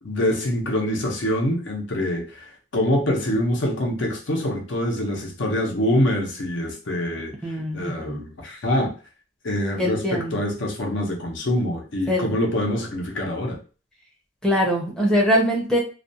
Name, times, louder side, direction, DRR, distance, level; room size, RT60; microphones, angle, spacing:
voice 1, 0.0-8.9 9.4-13.6, left 1 dB, 70° left, 1 dB, 0.7 m, -25 dB
voice 2, 7.4-8.2 9.8-10.4 12.1-12.4 14.4-15.8, equal, 5° left, -3 dB, 0.6 m, -22 dB
2.4 x 2.2 x 2.6 m, 0.35 s
head